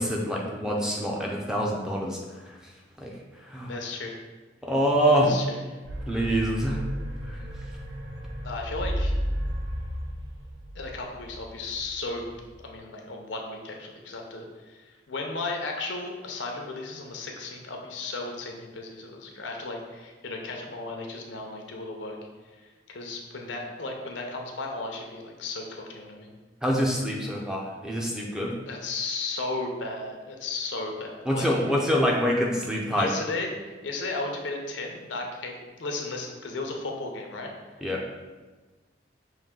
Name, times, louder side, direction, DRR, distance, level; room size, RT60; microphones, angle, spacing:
voice 1, 0.0-2.2 3.0-3.1 3.5-3.7 4.6-5.4 6.1-6.8 7.3-7.4 26.6-28.5 31.3-33.1 37.8-38.0, equal, 5° right, -2 dB, 0.5 m, -25 dB
voice 2, 3.6-4.2 5.0-5.6 8.4-9.1 10.7-12.2 12.6-22.2 22.6-26.3 28.7-31.5 32.9-33.5 33.8-37.5, left 3 dB, 80° left, 1 dB, 0.7 m, -35 dB
sound 1, 5.8-12.5, equal, 70° right, 0.6 m, -33 dB
5.4 x 2.6 x 3.7 m, 1.3 s
head